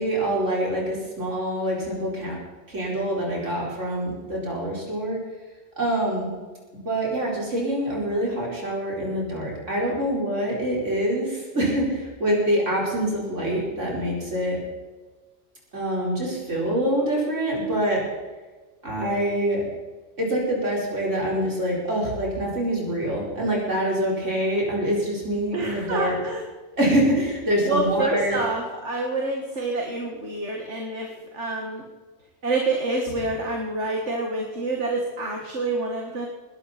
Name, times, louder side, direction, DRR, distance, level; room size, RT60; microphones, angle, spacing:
voice 1, 0.0-2.3 2.7-5.2 5.8-6.3 6.8-14.6 15.7-18.0 18.8-19.6 20.2-26.1 26.8-28.4, right 1 dB, 90° right, -4 dB, 5.1 m, -25 dB
voice 2, 25.5-26.5 27.6-31.9 32.4-36.3, right 2 dB, 70° right, 0 dB, 2.3 m, -27 dB
20.5 x 12.5 x 4.4 m, 1.3 s
omnidirectional pair, 1.2 m